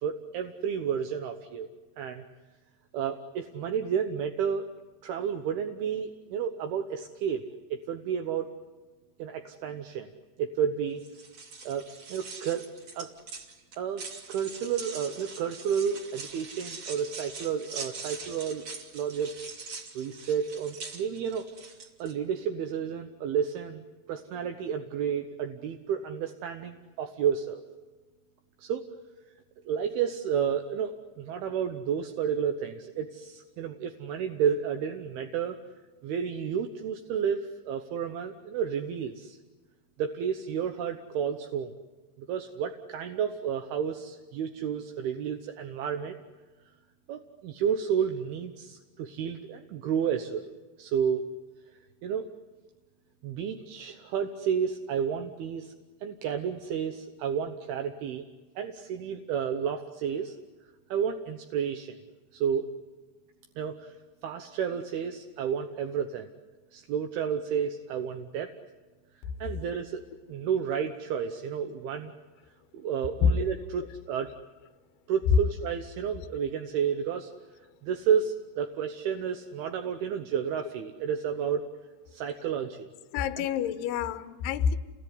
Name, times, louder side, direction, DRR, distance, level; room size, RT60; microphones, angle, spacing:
voice 1, 0.0-1.7 2.0-2.2 2.9-4.7 5.0-7.4 7.7-8.5 9.2-10.1 10.4-11.0 11.6-12.7 12.9-13.1 13.8-18.6 18.9-19.3 20.0-21.5 22.0-27.6 28.6-28.8 29.7-35.6 36.0-39.4 40.0-41.7 42.2-46.2 47.1-50.5 50.8-51.3 52.0-52.3 53.2-55.7 56.0-58.2 58.6-60.3 60.9-62.0 62.3-62.7 63.6-66.3 66.7-68.5 69.4-70.0 70.3-72.1 72.7-74.3 75.1-77.3 77.8-81.6 82.1-82.9 83.4-83.5, right 7 dB, 75° right, 6 dB, 2.4 m, -31 dB
sound 1, 11.0-22.1, right 4 dB, 40° right, 3.5 m, -43 dB
voice 2, 83.1-84.8, left 6 dB, 75° left, 8 dB, 2.7 m, -27 dB
29.5 x 20.5 x 9.7 m, 1.3 s
omnidirectional pair, 5.6 m